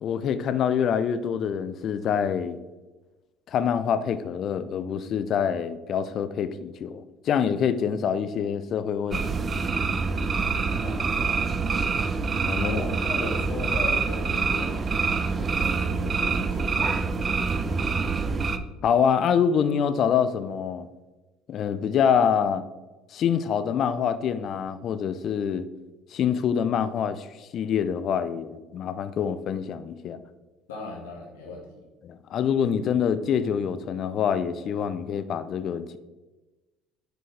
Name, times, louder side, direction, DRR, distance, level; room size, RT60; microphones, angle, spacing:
voice 1, 0.0-2.6 3.5-9.2 12.5-12.8 18.8-20.9 21.5-22.7 23.1-25.7 26.1-30.2 32.0-36.0, left 7 dB, 55° left, 13 dB, 0.4 m, -25 dB
sound 1, 9.1-18.6, right 4 dB, 35° right, 0.5 m, -26 dB
voice 2, 10.3-11.8 12.6-17.9 30.7-31.7, left 2 dB, 90° left, -2 dB, 1.7 m, -38 dB
6.3 x 4.5 x 3.3 m, 1.1 s
supercardioid pair, 75°, 0 cm